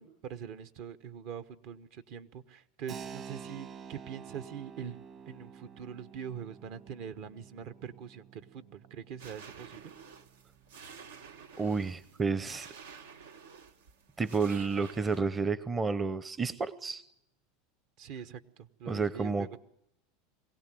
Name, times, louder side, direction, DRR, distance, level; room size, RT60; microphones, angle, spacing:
voice 1, 0.0-9.8 18.0-18.4 18.8-19.3, right 8 dB, 60° right, 11 dB, 1.1 m, -43 dB
Keyboard (musical), 2.9-11.3, right 7 dB, 45° right, 1.5 m, -49 dB
sound 1, 9.2-15.2, right 6 dB, 90° right, 1.2 m, -51 dB
voice 2, 11.6-12.7 14.2-17.0 18.9-19.6, right 4 dB, 20° right, 16 dB, 0.7 m, -31 dB
22.5 x 17.0 x 7.6 m, 0.80 s
supercardioid pair, 110°, 0 cm